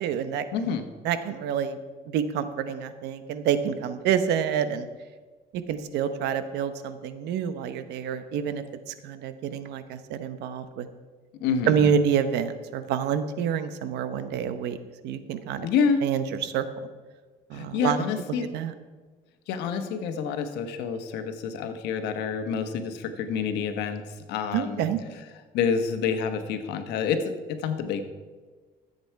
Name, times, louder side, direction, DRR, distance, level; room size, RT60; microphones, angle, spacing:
voice 1, 0.0-0.4 1.0-1.8 2.1-4.9 5.5-10.9 11.6-14.8 15.0-15.7 16.0-16.6 17.5-18.0 18.4-18.7 24.5-25.0, right 8 dB, 85° right, 11 dB, 0.9 m, -27 dB
voice 2, 0.5-0.8 11.4-11.9 15.6-16.1 17.5-18.5 19.5-24.0 24.3-24.8 25.5-28.0, left 6 dB, 90° left, 8 dB, 1.2 m, -28 dB
13.5 x 8.0 x 4.6 m, 1.4 s
cardioid pair, 110°, 17 cm